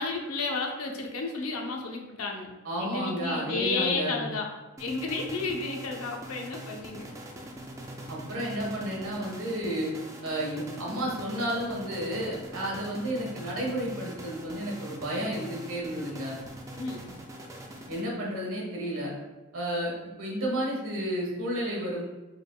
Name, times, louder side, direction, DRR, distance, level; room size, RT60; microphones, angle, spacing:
voice 1, 0.0-2.5 2.8-4.5 4.8-7.1 16.8-17.1, left 3 dB, 85° left, 1 dB, 0.8 m, -32 dB
voice 2, 2.6-4.3 8.1-9.9 10.2-16.4 17.9-19.1 19.5-19.9 20.2-22.0, right 1 dB, 75° right, -3 dB, 1.4 m, -32 dB
sound 1, 4.8-18.4, right 1 dB, 15° right, 0.4 m, -43 dB
4.8 x 4.5 x 2.3 m, 1.1 s
head